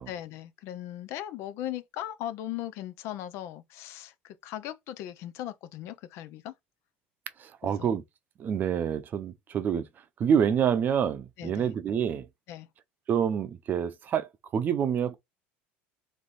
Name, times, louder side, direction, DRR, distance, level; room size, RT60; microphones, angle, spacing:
voice 1, 0.1-6.5 7.6-8.0 11.4-11.7 12.5-12.7, left 12 dB, 60° left, 0.6 m, -38 dB
voice 2, 7.4-8.0 8.4-9.8 10.2-12.3 13.1-15.2, right 8 dB, 35° right, 0.7 m, -27 dB
3.3 x 3.3 x 4.0 m
supercardioid pair, 120°, 5 cm